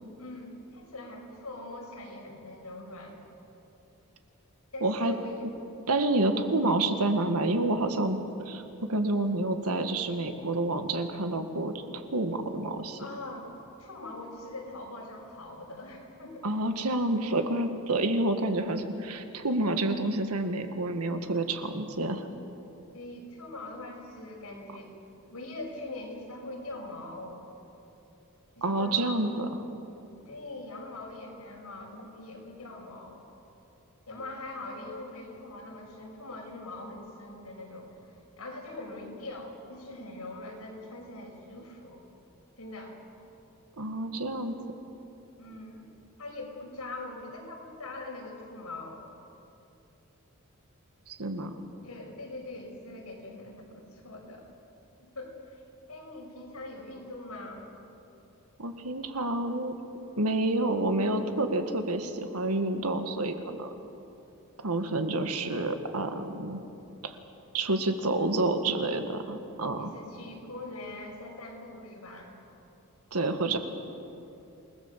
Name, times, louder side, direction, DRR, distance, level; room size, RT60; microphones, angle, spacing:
voice 1, 0.2-3.2 4.7-5.5 13.0-13.5 13.8-16.5 22.9-24.9 25.3-27.4 28.6-29.3 30.2-33.2 34.1-37.9 38.4-42.0 42.6-43.0 45.4-45.9 46.2-49.0 51.8-54.4 55.0-55.6 55.9-57.7 69.8-72.3, left 2 dB, 90° left, -1 dB, 5.9 m, -42 dB
voice 2, 4.8-5.1 5.9-8.2 8.5-11.7 12.1-13.0 16.4-22.3 28.6-29.5 43.8-44.6 51.1-51.5 58.6-59.7 60.2-63.7 64.6-66.6 67.0-67.2 67.5-69.9 73.1-73.6, right 2 dB, 90° right, 7 dB, 1.9 m, -28 dB
28.5 x 19.5 x 7.5 m, 2.9 s
head